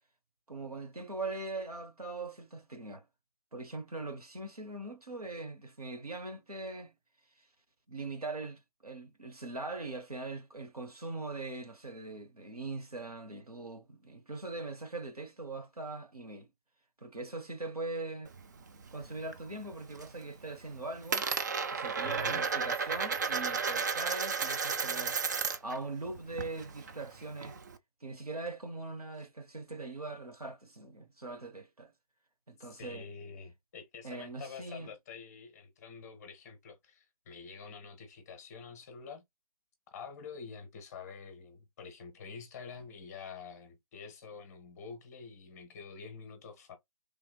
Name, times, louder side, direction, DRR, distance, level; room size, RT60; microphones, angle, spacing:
voice 1, 0.5-3.1 3.5-6.9 7.4-7.5 7.9-16.5 17.0-18.3 18.9-21.3 21.7-25.2 25.6-27.6 28.0-31.9 32.5-33.1 34.0-34.9, right 3 dB, 85° right, 1.2 m, -41 dB
Coin (dropping), 18.2-19.4 19.7-20.2 20.5-25.8 26.1-27.7, right 5 dB, 30° right, 0.4 m, -33 dB
voice 2, 22.0-22.4 32.6-39.2 39.9-46.8, left 5 dB, 25° left, 0.9 m, -47 dB
3.2 x 2.9 x 2.2 m
figure-of-eight pair, 140°, 19 cm